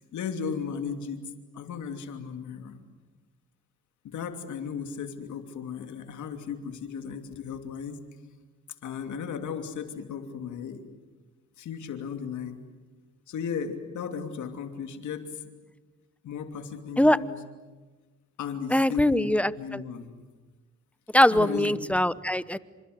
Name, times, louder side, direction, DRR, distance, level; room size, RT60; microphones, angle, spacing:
voice 1, 0.1-2.8 4.0-8.1 8.8-10.8 11.6-12.6 13.3-15.4 16.2-17.4 18.4-20.1 21.3-21.8, left 6 dB, 75° left, 6 dB, 2.9 m, -35 dB
voice 2, 18.7-19.8 21.1-22.6, left 1 dB, 5° left, 16 dB, 0.9 m, -22 dB
28.0 x 26.5 x 8.0 m, 1.3 s
cardioid pair, 90°, 30 cm